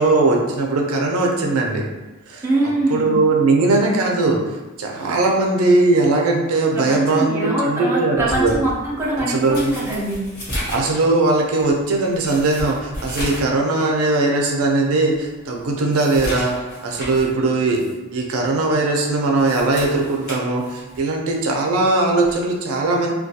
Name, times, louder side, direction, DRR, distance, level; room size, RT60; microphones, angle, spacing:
voice 1, 0.0-1.8 2.3-2.4 2.9-4.4 4.8-8.5 9.3-9.7 10.6-16.5 16.8-17.8 18.1-23.1, right 2 dB, 80° right, 0 dB, 0.4 m, -19 dB
voice 2, 2.4-3.2 6.7-10.2, right 2 dB, 10° right, -6 dB, 0.5 m, -22 dB
sound 1, 8.2-13.6 13.9-14.0 14.6-14.7 15.1-17.3 17.7-17.9 19.2-21.1 22.2-22.4, equal, 50° left, 0.9 m, -33 dB
2.2 x 2.2 x 2.7 m, 1.1 s
head